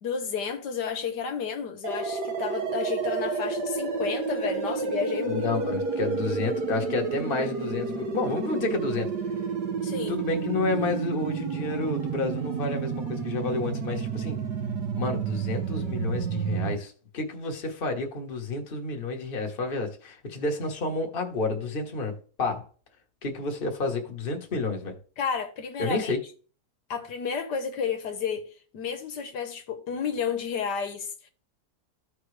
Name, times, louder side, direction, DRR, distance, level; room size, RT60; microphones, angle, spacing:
voice 1, 0.0-5.5 9.8-10.2 25.2-26.1 26.9-28.4 28.7-31.3, left 6 dB, 80° left, 1.6 m, -31 dB
sound 1, 1.8-16.7, right 5 dB, 75° right, 1.5 m, -30 dB
voice 2, 5.3-9.1 10.1-14.4 15.0-22.7 23.2-25.0 25.8-26.2, left 3 dB, 35° left, 1.3 m, -30 dB
14.0 x 4.8 x 3.2 m
omnidirectional pair, 1.8 m